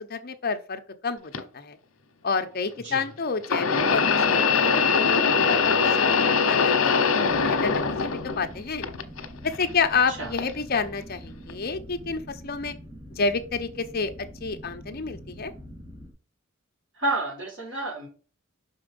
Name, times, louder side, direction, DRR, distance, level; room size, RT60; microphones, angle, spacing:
voice 1, 0.0-1.8 2.2-6.9 7.4-8.1 8.4-8.9 9.4-12.7 13.2-14.1 14.4-15.5, left 4 dB, 45° left, 7 dB, 0.9 m, -29 dB
sound 1, 1.3-1.4 3.4-8.5 8.8-9.6 10.4-10.5 11.5-11.6, left 5 dB, 75° left, 1.0 m, -22 dB
sound 2, 7.2-16.1, equal, 35° right, 2.5 m, -44 dB
voice 2, 16.9-18.1, right 2 dB, 60° right, -5 dB, 3.8 m, -30 dB
6.0 x 4.6 x 5.3 m, 0.38 s
head